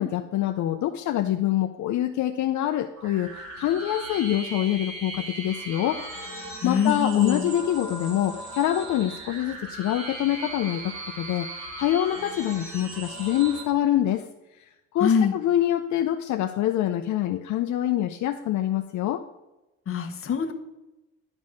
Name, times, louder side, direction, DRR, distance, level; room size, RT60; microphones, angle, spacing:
voice 1, 0.0-6.0 6.6-14.2 14.9-19.2, left 12 dB, 75° left, 6 dB, 0.5 m, -25 dB
sound 1, 3.0-13.6, right 1 dB, 75° right, 2.5 m, -38 dB
voice 2, 6.6-7.5 15.0-15.3 19.9-20.5, left 7 dB, 45° left, 7 dB, 1.0 m, -23 dB
10.5 x 4.1 x 4.9 m, 1.0 s
cardioid pair, 90°, 30 cm